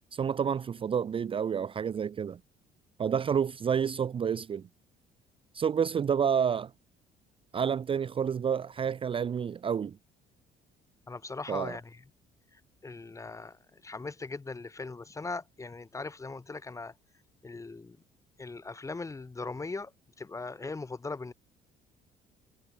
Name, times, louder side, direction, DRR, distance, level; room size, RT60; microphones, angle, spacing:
voice 1, 0.1-2.4 3.0-4.6 5.5-6.7 7.5-10.0 11.5-11.8, right 7 dB, 30° right, 0.6 m, -29 dB
voice 2, 11.1-12.0 12.5-16.9 17.4-18.0 18.4-19.9 20.2-21.3, left 3 dB, 20° left, 2.2 m, -39 dB
cardioid pair, 110°, 17 cm